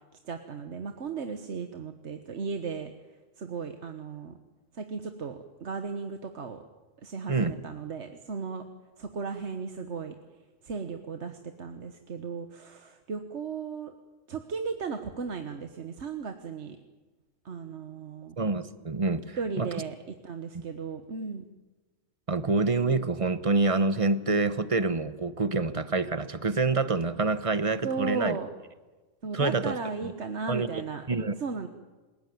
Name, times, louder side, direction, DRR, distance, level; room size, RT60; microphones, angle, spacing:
voice 1, 0.2-2.9 3.4-4.4 4.7-6.6 7.0-8.6 9.0-10.1 10.6-13.9 14.3-16.8 17.4-18.3 19.4-19.9 20.2-21.4 27.8-28.5 29.2-31.0 31.4-31.7, right 5 dB, 60° right, 6 dB, 1.5 m, -35 dB
voice 2, 18.4-19.7 22.3-28.4 29.3-29.7 30.0-30.1 30.5-30.7 31.1-31.3, right 3 dB, 30° right, 12 dB, 1.0 m, -27 dB
27.0 x 17.0 x 9.4 m, 1.3 s
omnidirectional pair, 1.3 m